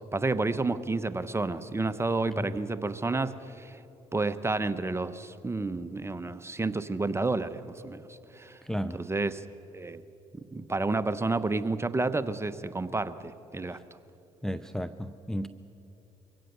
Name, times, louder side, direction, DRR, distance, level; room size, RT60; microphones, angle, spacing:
voice 1, 0.1-3.8 4.1-8.0 8.4-8.6 8.9-9.4 9.7-10.0 10.5-13.8, right 3 dB, 20° right, 12 dB, 1.0 m, -30 dB
voice 2, 8.6-9.0 14.4-15.5, equal, 5° left, 10 dB, 0.6 m, -33 dB
24.0 x 16.5 x 6.9 m, 2.8 s
supercardioid pair, 60°, 14 cm